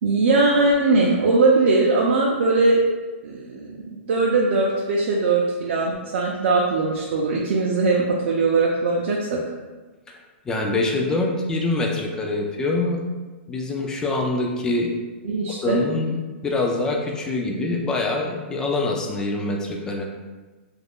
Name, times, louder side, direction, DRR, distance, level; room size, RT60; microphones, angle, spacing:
voice 1, 0.0-2.8 3.2-9.4 15.2-15.8, right 3 dB, 65° right, -3 dB, 0.4 m, -20 dB
voice 2, 10.5-13.0 13.5-14.9 15.6-20.1, left 2 dB, 10° left, 0 dB, 0.3 m, -24 dB
2.4 x 2.1 x 3.4 m, 1.3 s
hypercardioid pair, 150°, 7 cm